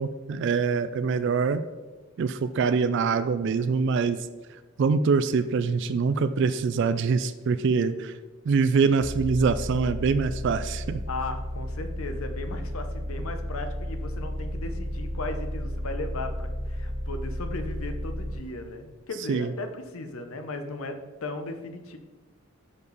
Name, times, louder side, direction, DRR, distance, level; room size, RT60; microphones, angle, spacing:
voice 1, 0.0-1.6 2.2-4.2 4.8-8.1 8.5-11.0 19.3-19.5, right 5 dB, 55° right, 12 dB, 0.3 m, -24 dB
sound 1, 9.0-18.3, equal, 20° left, 1.0 m, -33 dB
voice 2, 11.1-22.0, left 2 dB, 75° left, 7 dB, 0.8 m, -36 dB
6.7 x 5.3 x 4.0 m, 1.3 s
head